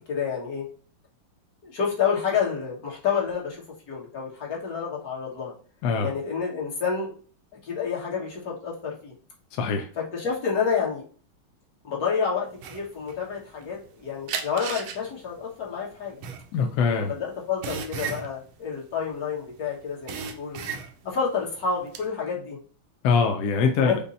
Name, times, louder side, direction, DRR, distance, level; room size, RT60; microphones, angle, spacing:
voice 1, 0.1-0.7 1.6-5.5 6.0-7.1 7.6-9.1 9.9-11.0 11.8-16.2 17.0-20.6 21.0-22.6 23.8-24.0, left 6 dB, 50° left, -4 dB, 1.6 m, -29 dB
voice 2, 9.5-9.9 16.5-17.1 23.0-24.0, left 5 dB, 75° left, 4 dB, 0.9 m, -23 dB
sound 1, 12.6-13.9 14.3-19.5 19.8-21.2 21.6-22.1, right 6 dB, 85° right, 1.5 m, -35 dB
5.2 x 2.2 x 4.1 m, 0.42 s
omnidirectional pair, 2.3 m